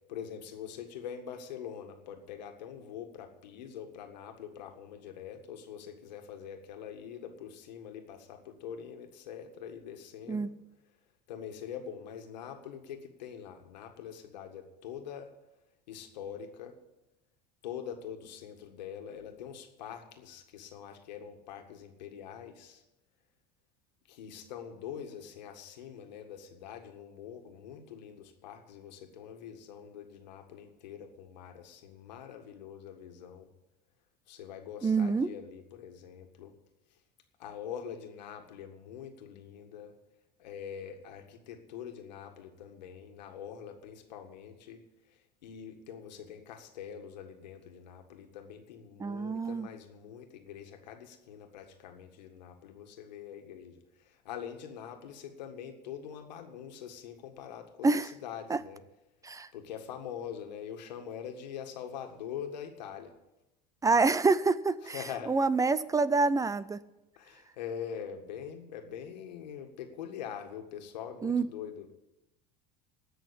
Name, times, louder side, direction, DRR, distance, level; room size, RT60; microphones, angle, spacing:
voice 1, 0.1-10.5 11.3-15.3 15.9-16.8 17.6-22.8 24.1-33.5 34.3-36.5 36.9-37.0 37.4-39.9 40.4-58.8 59.5-63.1 64.8-65.3 67.2-71.9, left 8 dB, 90° left, 5 dB, 1.8 m, -44 dB
voice 2, 34.8-35.3 49.0-49.7 57.8-58.1 58.5-58.6 59.2-59.5 63.8-65.0 65.3-66.8 71.2-71.5, right 4 dB, 15° right, 17 dB, 0.5 m, -27 dB
17.0 x 6.3 x 8.4 m, 0.94 s
supercardioid pair, 100°, 21 cm